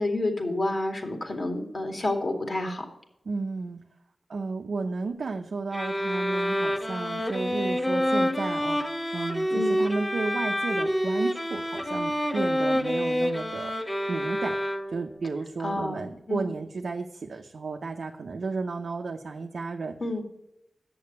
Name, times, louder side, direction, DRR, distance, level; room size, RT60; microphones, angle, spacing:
voice 1, 0.0-2.9 9.5-9.8 15.6-16.5 20.0-20.2, left 2 dB, 55° left, 3 dB, 2.3 m, -29 dB
voice 2, 3.3-3.8 4.3-8.8 9.1-14.6 14.9-20.0, right 3 dB, 75° right, 2 dB, 0.7 m, -33 dB
sound 1, 5.7-15.2, equal, 20° left, 1.1 m, -27 dB
7.8 x 6.7 x 8.0 m, 0.85 s
cardioid pair, 45°, 0 cm